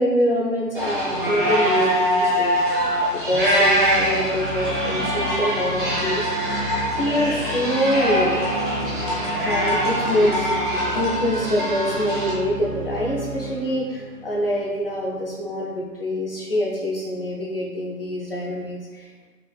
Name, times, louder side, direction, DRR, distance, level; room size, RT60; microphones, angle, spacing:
voice 1, 0.0-2.6 3.1-6.2 7.0-8.4 9.4-10.5 10.9-19.3, equal, 35° left, -4 dB, 0.6 m, -25 dB
sound 1, 0.7-12.3, equal, 35° right, 0.7 m, -23 dB
sound 2, 3.4-10.3, left 2 dB, 90° left, 1.5 m, -41 dB
sound 3, 3.7-15.2, right 2 dB, 85° right, 1.5 m, -34 dB
5.3 x 2.4 x 2.2 m, 1.4 s
figure-of-eight pair, 155°, 48 cm